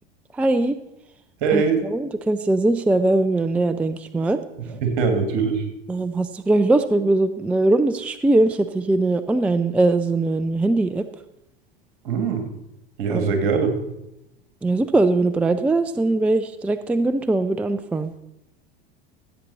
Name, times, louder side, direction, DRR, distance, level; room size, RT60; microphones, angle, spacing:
voice 1, 0.3-0.7 1.5-4.4 5.9-11.1 13.1-13.3 14.6-18.1, right 2 dB, 5° right, 12 dB, 0.3 m, -21 dB
voice 2, 1.4-1.8 4.7-5.7 12.0-12.4 13.0-13.7, right 5 dB, 60° right, 6 dB, 2.2 m, -22 dB
15.5 x 8.1 x 4.1 m, 0.89 s
figure-of-eight pair, 80°, 29 cm